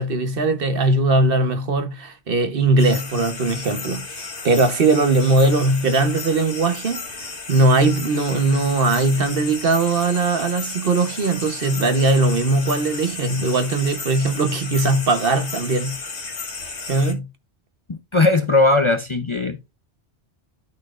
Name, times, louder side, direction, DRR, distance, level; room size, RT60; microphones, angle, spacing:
voice 1, 0.0-16.0 16.9-17.3, right 2 dB, 55° right, 1.2 m, -20 dB
sound 1, 2.8-17.1, left 4 dB, 80° left, 1.8 m, -33 dB
voice 2, 17.9-19.6, left 2 dB, 35° left, 0.6 m, -18 dB
12.0 x 4.4 x 2.5 m
omnidirectional pair, 1.1 m